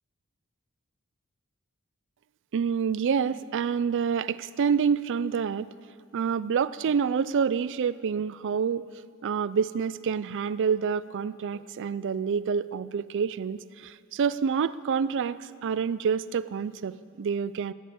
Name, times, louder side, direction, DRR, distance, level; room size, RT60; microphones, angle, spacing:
voice 1, 2.5-5.7 6.1-8.9 9.2-17.7, right 6 dB, 60° right, 16 dB, 0.4 m, -27 dB
17.5 x 7.4 x 8.5 m, 2.2 s
head